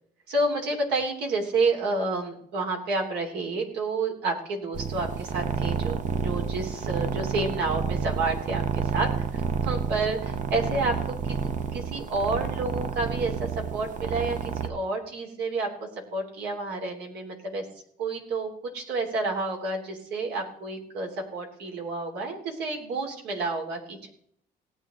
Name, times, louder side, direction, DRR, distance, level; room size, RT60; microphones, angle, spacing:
voice 1, 0.3-10.9 11.3-15.7 16.1-17.6 18.0-24.1, right 3 dB, 80° right, 1 dB, 3.3 m, -30 dB
sound 1, 4.7-14.7, right 7 dB, 45° right, 0.8 m, -30 dB
18.0 x 8.8 x 3.8 m, 0.66 s
cardioid pair, 110°, 17 cm